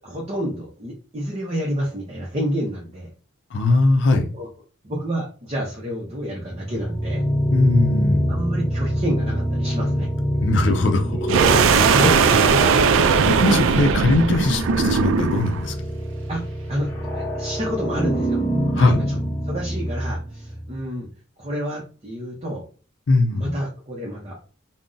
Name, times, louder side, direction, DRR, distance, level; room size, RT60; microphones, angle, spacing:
voice 1, 0.0-3.1 4.3-4.5 4.8-7.2 8.3-10.1 11.4-12.2 12.6-12.8 16.3-16.4 16.7-16.9 17.1-18.4 18.7-21.1 21.4-22.6 23.3-24.4, equal, 30° right, -2 dB, 0.6 m, -29 dB
voice 2, 3.5-4.3 7.5-8.4 10.4-11.3 13.3-15.7 18.7-19.0 23.1-23.5, left 2 dB, 60° left, 3 dB, 0.5 m, -20 dB
sound 1, 6.2-20.8, equal, 10° left, 0.8 m, -26 dB
sound 2, 11.3-15.6, right 5 dB, 80° right, 0.3 m, -18 dB
2.5 x 2.0 x 3.7 m, 0.38 s
head